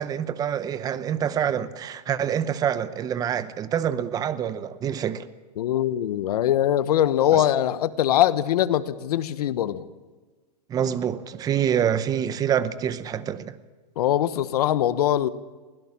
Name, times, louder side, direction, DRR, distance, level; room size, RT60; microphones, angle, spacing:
voice 1, 0.0-5.3 7.3-7.4 10.7-13.6, right 9 dB, 15° right, 0.8 m, -26 dB
voice 2, 5.6-9.8 14.0-15.3, left 11 dB, 65° left, 1.1 m, -22 dB
23.5 x 16.5 x 7.3 m
hypercardioid pair, 145°, 21 cm